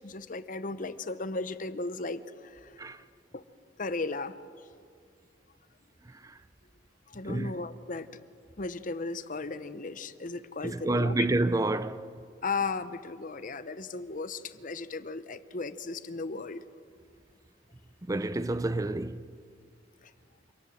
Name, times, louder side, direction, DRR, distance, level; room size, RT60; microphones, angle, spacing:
voice 1, 0.0-3.0 3.3-3.4 3.8-4.3 7.1-8.1 8.6-11.3 12.4-16.6 20.0-20.1, left 3 dB, 45° left, 0.8 m, -36 dB
voice 2, 10.6-12.1 18.1-19.2, right 2 dB, 20° right, 0.5 m, -28 dB
26.5 x 18.5 x 7.3 m
head